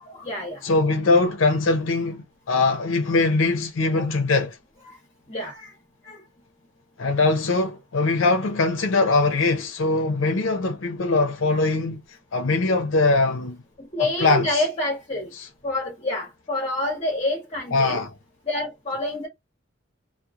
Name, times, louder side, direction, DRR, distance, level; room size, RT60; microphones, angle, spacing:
voice 1, 0.0-0.6 4.0-4.1 4.9-5.0 5.3-5.7 6.0-6.2 13.8-15.3 15.6-18.0 18.5-19.3, left 2 dB, 30° left, 0.8 m, -28 dB
voice 2, 0.6-4.6 7.0-12.0 12.3-13.6 14.0-14.6 15.3-15.5 17.7-18.1, left 3 dB, 75° left, 0.5 m, -22 dB
2.9 x 2.0 x 2.3 m
head